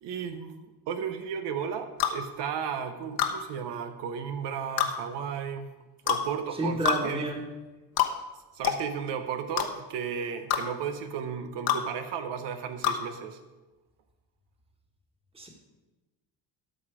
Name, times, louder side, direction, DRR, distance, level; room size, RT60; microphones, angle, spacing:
voice 1, 0.0-5.7 6.1-7.3 8.5-13.4, right 7 dB, 75° right, 8 dB, 0.9 m, -34 dB
sound 1, 2.0-2.2 3.2-3.4 4.8-4.9 6.1-6.2 6.8-7.0 8.0-8.1 8.6-8.8 9.6-9.7 10.5-10.6 11.7-11.8 12.8-13.0, left 9 dB, 60° left, 1.1 m, -25 dB
voice 2, 6.5-7.4 15.3-15.5, right 1 dB, 15° right, 1 dB, 1.7 m, -30 dB
13.0 x 5.8 x 4.9 m, 1.1 s
cardioid pair, 135°, 42 cm